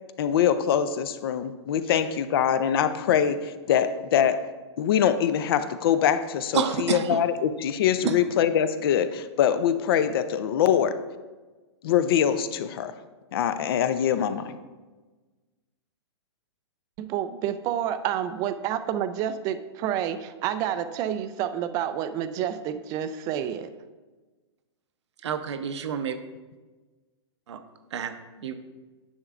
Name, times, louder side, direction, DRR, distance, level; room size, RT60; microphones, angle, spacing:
voice 1, 0.2-4.4 4.8-11.0 11.8-12.9 13.3-14.5, left 9 dB, 55° left, 12 dB, 0.5 m, -23 dB
voice 2, 6.5-7.2 8.0-8.1 25.2-26.2 27.5-27.6 27.9-28.1 28.4-28.6, right 7 dB, 70° right, 8 dB, 0.8 m, -28 dB
voice 3, 17.0-23.7, right 10 dB, 25° right, 11 dB, 0.4 m, -29 dB
9.7 x 7.1 x 2.5 m, 1.3 s
hypercardioid pair, 145°, 15 cm